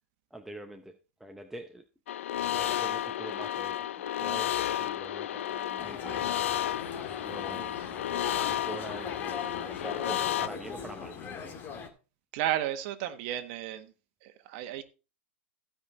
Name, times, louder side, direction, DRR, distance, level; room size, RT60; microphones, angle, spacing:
voice 1, 0.3-1.8 2.4-6.7 7.2-7.9 8.3-11.4, right 2 dB, 5° right, 0.8 m, -45 dB
sound 1, 2.1-10.5, left 12 dB, 75° left, 0.6 m, -32 dB
sound 2, 5.8-11.9, left 6 dB, 30° left, 1.8 m, -40 dB
voice 2, 12.3-13.9 14.2-14.8, right 12 dB, 50° right, 1.4 m, -33 dB
15.0 x 5.2 x 4.3 m
hypercardioid pair, 120°, 7 cm